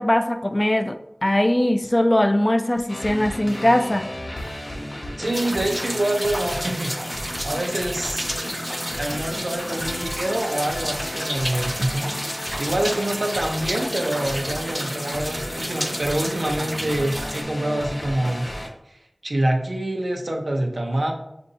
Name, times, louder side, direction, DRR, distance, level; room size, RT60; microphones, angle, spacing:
voice 1, 0.0-4.1, left 1 dB, 35° left, 7 dB, 0.4 m, -20 dB
sound 1, 2.9-18.7, left 1 dB, 70° left, 0.7 m, -33 dB
voice 2, 5.2-7.1 7.4-8.3 8.9-18.5 18.9-21.1, right 1 dB, 85° right, 1 dB, 0.7 m, -26 dB
sound 2, 5.3-17.4, equal, 20° right, 0.5 m, -31 dB
6.3 x 2.6 x 2.7 m, 0.82 s
wide cardioid pair, 40°, 0 cm